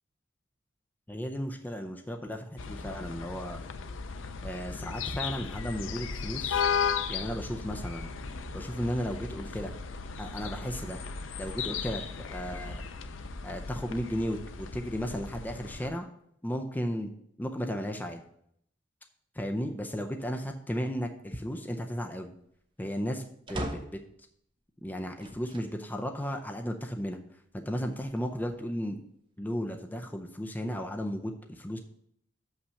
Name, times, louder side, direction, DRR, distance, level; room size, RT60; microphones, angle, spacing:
voice 1, 1.1-3.6 4.4-6.6 7.1-8.1 8.5-9.7 10.2-11.0 11.4-12.8 13.4-16.1 16.4-17.1 17.4-18.2 19.4-22.3 22.8-23.2 23.5-23.8 24.8-27.2 27.7-29.0 29.4-31.8, equal, 10° left, 4 dB, 0.5 m, -34 dB
sound 1, 2.6-15.9, left 6 dB, 85° left, 0.6 m, -36 dB
sound 2, 23.5-24.1 25.2-25.7 26.4-26.5 27.7-28.5, right 1 dB, 25° right, 0.9 m, -39 dB
6.6 x 5.7 x 5.6 m, 0.70 s
head